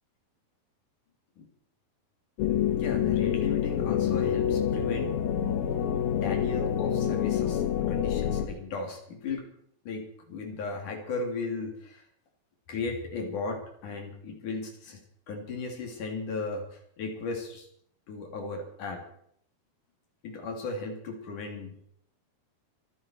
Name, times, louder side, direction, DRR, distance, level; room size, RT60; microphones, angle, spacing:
sound 1, 2.4-8.5, left 9 dB, 75° left, 2.9 m, -27 dB
voice 1, 2.7-5.7 6.1-9.5 9.9-12.0 12.7-15.0 15.3-17.7 18.1-19.0 20.2-21.8, left 3 dB, 55° left, 2 dB, 4.4 m, -36 dB
26.5 x 9.9 x 4.5 m, 0.67 s
omnidirectional pair, 4.4 m